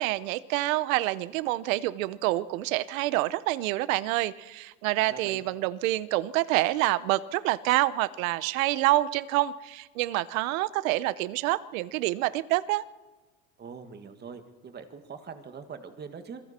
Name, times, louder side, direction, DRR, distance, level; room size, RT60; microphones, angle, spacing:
voice 1, 0.0-12.8, right 17 dB, 85° right, 18 dB, 0.9 m, -27 dB
voice 2, 5.1-5.4 13.6-16.5, right 6 dB, 25° right, 7 dB, 1.9 m, -43 dB
27.0 x 23.0 x 4.4 m, 1.2 s
supercardioid pair, 135°, 39 cm